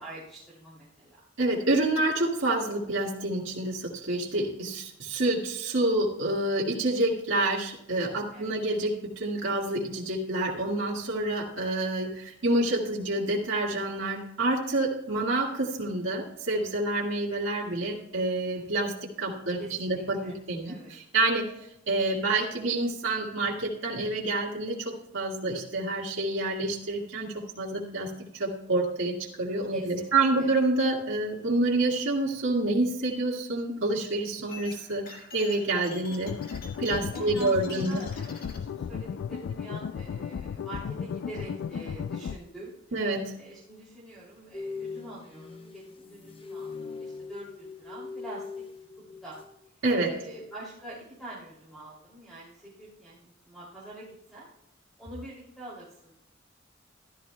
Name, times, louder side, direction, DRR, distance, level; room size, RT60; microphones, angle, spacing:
voice 1, 0.0-1.3 8.3-8.7 19.6-20.4 20.6-20.9 29.7-30.5 37.1-48.6 49.2-49.4 50.0-54.5 55.0-56.1, right 1 dB, ahead, -8 dB, 2.7 m, -45 dB
voice 2, 1.4-21.5 21.9-38.0 42.9-43.4 49.8-50.1, right 2 dB, 75° right, -3 dB, 1.9 m, -28 dB
sound 1, 34.5-38.6, left 4 dB, 50° left, 1.8 m, -47 dB
sound 2, 36.2-42.4, left 7 dB, 65° left, 0.3 m, -35 dB
sound 3, 44.5-49.7 49.9-50.2, left 4 dB, 30° left, 0.9 m, -41 dB
15.0 x 12.0 x 2.2 m, 0.78 s
head